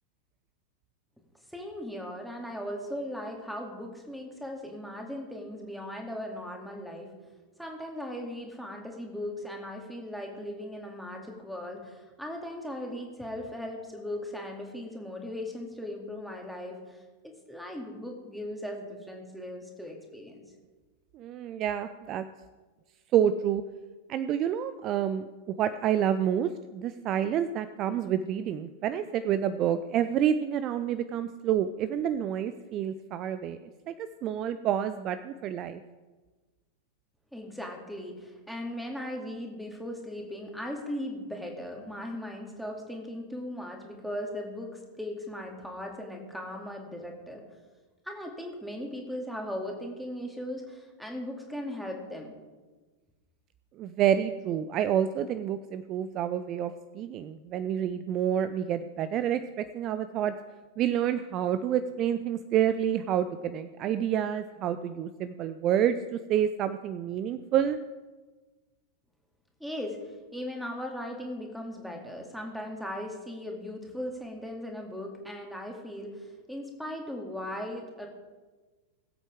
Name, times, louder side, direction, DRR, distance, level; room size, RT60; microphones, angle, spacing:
voice 1, 1.5-7.1 7.6-17.0 17.5-20.4 37.3-47.4 48.0-52.3 69.6-78.1, left 1 dB, ahead, 1 dB, 2.3 m, -38 dB
voice 2, 21.1-22.2 23.1-23.6 24.1-33.6 33.9-35.8 53.8-60.3 60.8-67.8, right 9 dB, 35° right, 12 dB, 0.5 m, -28 dB
20.5 x 8.2 x 3.6 m, 1.3 s
figure-of-eight pair, 90°, 0 cm